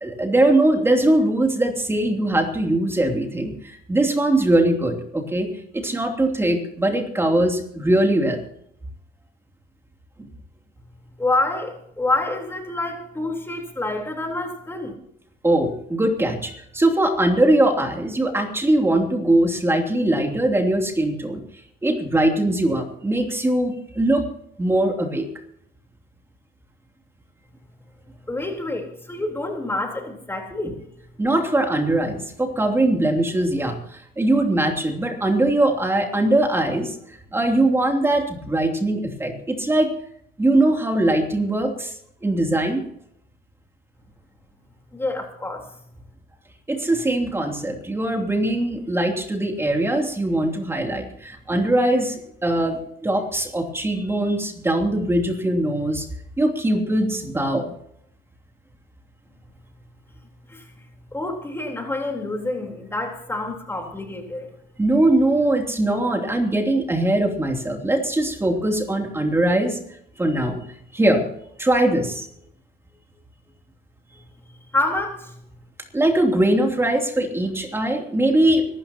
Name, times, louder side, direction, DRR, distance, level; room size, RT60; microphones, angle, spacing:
voice 1, 0.0-5.5 5.7-8.4 10.2-10.3 15.4-21.4 21.8-24.3 24.6-25.3 31.2-37.0 37.3-39.9 40.4-42.8 46.7-56.1 56.4-57.7 64.8-69.8 70.2-70.6 70.9-71.2 71.6-72.3 75.9-78.7, right 1 dB, 15° right, 3 dB, 2.9 m, -21 dB
voice 2, 11.2-15.0 28.3-30.8 44.9-45.7 60.5-60.7 61.1-64.5 74.7-75.3, left 2 dB, 15° left, 2 dB, 3.8 m, -27 dB
24.5 x 13.0 x 2.9 m, 0.71 s
cardioid pair, 110°, 17 cm